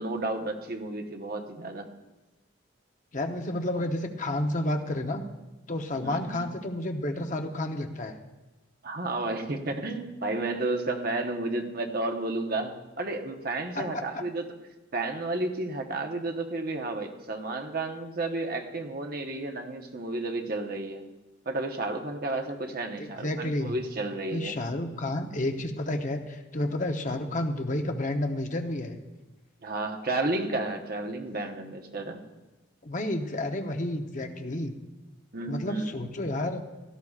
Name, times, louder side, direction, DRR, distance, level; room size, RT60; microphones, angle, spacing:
voice 1, 0.0-1.9 6.0-6.5 8.8-14.4 14.9-21.0 21.5-24.6 29.6-32.2 35.3-36.0, right 2 dB, 50° right, 4 dB, 1.1 m, -32 dB
voice 2, 3.1-5.2 5.7-8.2 13.8-14.0 23.0-23.8 24.3-29.0 32.8-34.7 35.5-36.6, left 1 dB, 40° left, 5 dB, 0.9 m, -30 dB
16.5 x 12.5 x 2.4 m, 1.1 s
head